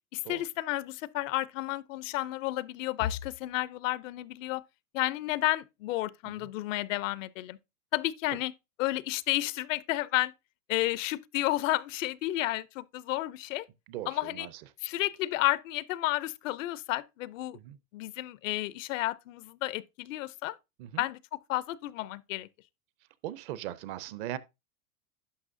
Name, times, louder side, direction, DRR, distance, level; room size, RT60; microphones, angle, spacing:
voice 1, 0.1-4.6 4.9-7.6 7.9-8.5 8.8-10.3 10.7-13.7 14.1-14.5 14.8-17.6 17.9-20.6 21.0-22.5, left 16 dB, 60° left, 0.5 m, -31 dB
voice 2, 13.9-14.6 17.5-17.8 20.8-21.0 23.2-24.4, right 13 dB, 40° right, 0.5 m, -39 dB
11.0 x 6.0 x 2.6 m
supercardioid pair, 140°, 45 cm